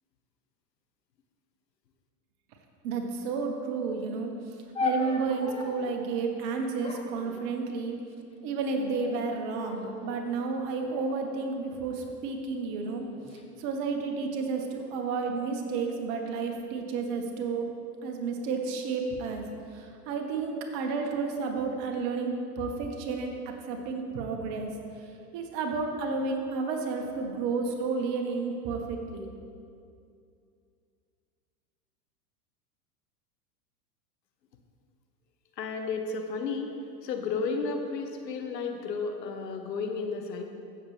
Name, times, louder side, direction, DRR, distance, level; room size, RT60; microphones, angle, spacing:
voice 1, 2.8-8.0 8.4-13.1 13.6-17.6 18.0-23.3 23.6-29.3, right 4 dB, 50° right, 3 dB, 1.6 m, -31 dB
sound 1, 4.7-6.0 6.8-8.0 8.8-9.3 9.7-10.2 10.9-12.2 13.0-13.4, left 4 dB, 10° left, 0.7 m, -37 dB
voice 2, 35.6-36.7 37.0-40.5, left 4 dB, 85° left, 5 dB, 1.2 m, -32 dB
15.0 x 7.1 x 3.4 m, 2.5 s
hypercardioid pair, 105°, 48 cm